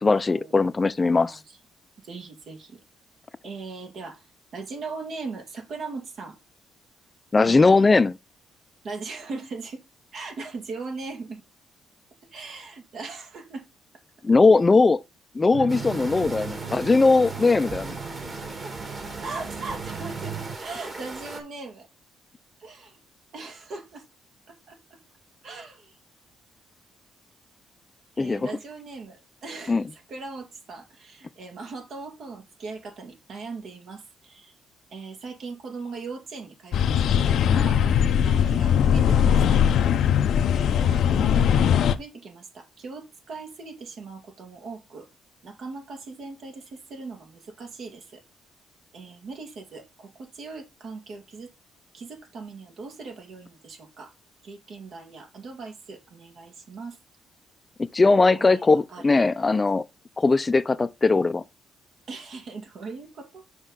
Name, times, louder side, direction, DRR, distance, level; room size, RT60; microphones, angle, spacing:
voice 1, 0.0-1.4 7.3-8.2 14.2-15.0 15.3-18.0 28.2-28.5 29.7-29.8 57.9-59.8 60.2-61.4, left 3 dB, 30° left, 0.5 m, -19 dB
voice 2, 1.2-1.6 2.0-2.8 3.4-4.2 4.5-6.4 7.4-7.9 8.8-9.8 10.1-11.4 12.3-13.7 15.6-15.7 18.6-18.7 19.0-21.9 22.6-23.0 23.3-24.0 24.5-25.0 25.4-26.0 28.2-34.5 34.9-39.6 40.5-45.1 45.4-48.2 48.9-51.5 51.9-54.1 54.4-57.0 58.4-59.3 62.1-63.4, right 4 dB, 65° right, 2.1 m, -39 dB
sound 1, 15.5-20.5, right 7 dB, 80° right, 1.4 m, -37 dB
sound 2, 15.7-21.4, right 2 dB, 35° right, 2.4 m, -38 dB
sound 3, 36.7-41.9, left 8 dB, 70° left, 0.6 m, -20 dB
6.2 x 5.3 x 4.0 m
cardioid pair, 75°, 0 cm